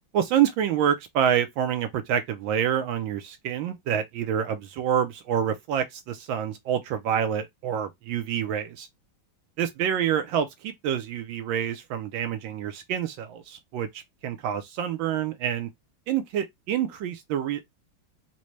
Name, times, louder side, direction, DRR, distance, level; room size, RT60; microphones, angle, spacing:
voice 1, 0.1-8.9 9.6-15.7 16.1-17.7, right 9 dB, 75° right, 1.2 m, -27 dB
4.0 x 2.2 x 3.1 m
omnidirectional pair, 2.3 m